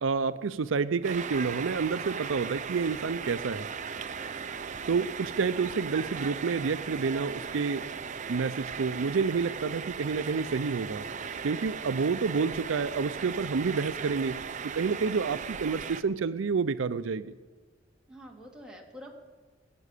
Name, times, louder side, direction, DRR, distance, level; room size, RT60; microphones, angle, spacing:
voice 1, 0.0-3.7 4.9-7.9 8.3-11.1 11.4-14.4 14.6-17.3, right 5 dB, 85° right, 14 dB, 0.5 m, -29 dB
sound 1, 1.0-16.0, right 6 dB, 40° right, 0.6 m, -37 dB
voice 2, 18.1-19.1, equal, 5° right, -2 dB, 2.4 m, -47 dB
20.0 x 7.6 x 8.3 m, 1.4 s
head